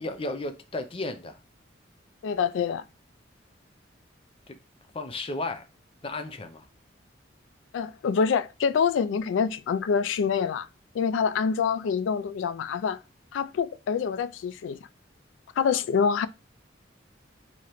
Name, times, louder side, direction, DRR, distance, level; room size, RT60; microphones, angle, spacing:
voice 1, 0.0-1.4 4.5-4.6 4.9-5.6 6.0-6.7, left 2 dB, 30° left, 0.5 m, -33 dB
voice 2, 2.2-2.8 7.7-10.7 10.9-13.0 13.3-14.8 15.6-16.3, left 6 dB, 85° left, 0.3 m, -26 dB
4.8 x 2.8 x 3.0 m
head